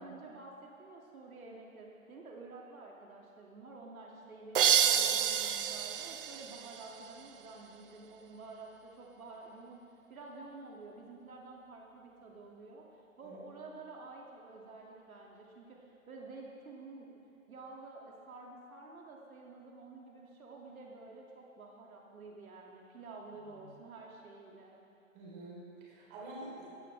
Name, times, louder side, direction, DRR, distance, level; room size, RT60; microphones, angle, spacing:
voice 1, 0.0-9.8 10.1-12.9 13.2-17.2 17.5-24.8, right 3 dB, 90° right, -2 dB, 2.5 m, -50 dB
sound 1, 4.5-7.3, right 8 dB, 45° right, 0.5 m, -29 dB
voice 2, 25.1-26.7, right 1 dB, 25° right, -4 dB, 3.9 m, -48 dB
16.5 x 14.5 x 3.4 m, 2.7 s
hypercardioid pair, 160°, 41 cm